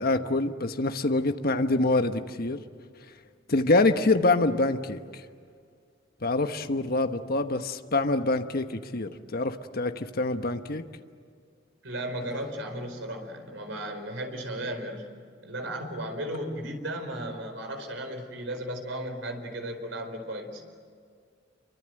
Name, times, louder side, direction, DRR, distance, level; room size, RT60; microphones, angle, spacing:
voice 1, 0.0-2.6 3.5-5.0 6.2-10.8, left 2 dB, 50° left, 7 dB, 1.2 m, -25 dB
voice 2, 11.8-15.1 15.4-20.6, right 1 dB, 75° right, 5 dB, 4.5 m, -35 dB
28.0 x 24.0 x 7.8 m, 2.1 s
head